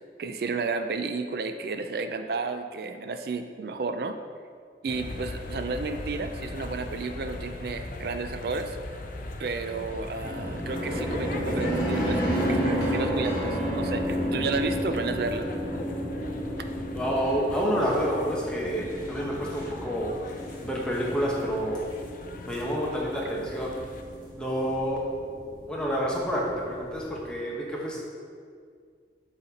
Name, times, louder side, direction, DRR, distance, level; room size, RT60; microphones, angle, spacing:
voice 1, 0.2-4.2 4.8-8.8 9.4-15.5, right 4 dB, 55° right, 8 dB, 0.4 m, -32 dB
sound 1, 4.9-24.0, left 2 dB, 45° left, 0.4 m, -40 dB
sound 2, 10.2-27.3, equal, 25° left, 1.5 m, -32 dB
voice 2, 16.9-20.1 20.6-21.8 22.4-23.7 24.4-25.0 25.7-28.0, equal, 5° left, -4 dB, 1.0 m, -28 dB
7.8 x 4.2 x 4.1 m, 2.2 s
head